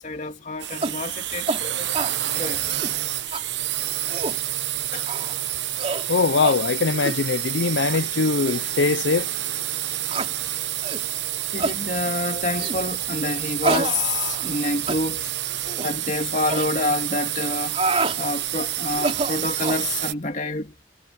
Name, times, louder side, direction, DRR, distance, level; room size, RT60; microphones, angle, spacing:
voice 1, 0.0-2.0 2.3-2.7 4.3-4.4 4.9-5.1 11.5-15.3 15.8-17.8 18.2-20.7, left 2 dB, 40° left, 2.5 m, -28 dB
sound 1, 0.6-20.1, right 13 dB, 70° right, 1.0 m, -28 dB
sound 2, 0.8-1.0 1.5-1.6 1.9-2.2 2.6-3.0 3.3-3.4 3.9-4.4 5.1-5.4 5.8-6.1 6.4-6.6 7.0-7.2 7.8-8.0 8.5-8.6 9.2-9.3 10.1-10.3 10.8-11.1 11.6-11.8 12.6-12.8 13.6-14.6 14.9-15.0 15.6-15.9 16.5-16.7 17.5-18.2 18.9-19.9, right 3 dB, 30° right, 3.0 m, -28 dB
voice 2, 6.1-9.3, left 4 dB, 75° left, 0.6 m, -22 dB
head